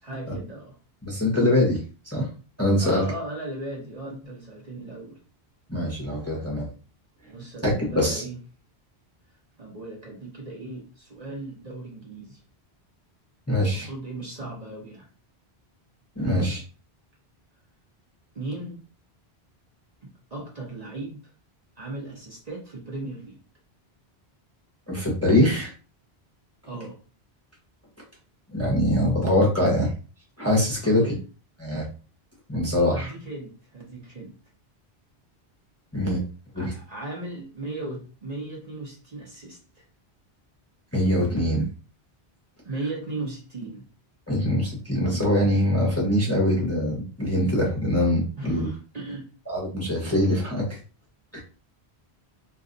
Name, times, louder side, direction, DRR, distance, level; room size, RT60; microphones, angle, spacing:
voice 1, 0.0-0.8 2.8-5.2 7.3-8.4 9.6-12.4 13.6-15.1 16.2-16.5 18.3-18.8 20.0-21.3 21.8-23.4 26.6-27.0 30.8-31.2 32.7-34.3 36.6-39.8 42.6-43.9 48.4-49.3, right 2 dB, 40° right, 0.8 m, -37 dB
voice 2, 1.0-2.3 2.6-3.0 5.7-6.7 7.6-8.2 13.5-13.9 16.2-16.6 24.9-25.7 28.5-29.9 30.4-31.1 31.6-31.9 32.5-33.1 35.9-36.2 36.5-36.7 40.9-41.7 44.3-48.7 49.5-50.8 51.3-51.4, left 1 dB, 15° left, 0.7 m, -23 dB
2.5 x 2.3 x 3.8 m
omnidirectional pair, 1.1 m